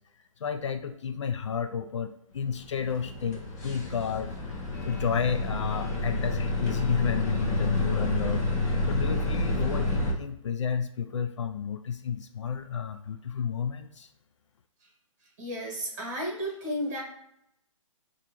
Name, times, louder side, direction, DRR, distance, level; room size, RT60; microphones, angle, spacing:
voice 1, 0.4-4.4 4.9-8.5 8.9-14.1, left 7 dB, 60° left, 9 dB, 0.4 m, -31 dB
sound 1, 2.6-10.1, left 1 dB, 30° left, 0.7 m, -29 dB
voice 2, 15.4-17.0, equal, 30° right, -2 dB, 1.5 m, -33 dB
4.8 x 2.5 x 2.9 m, 0.75 s
hypercardioid pair, 165°, 18 cm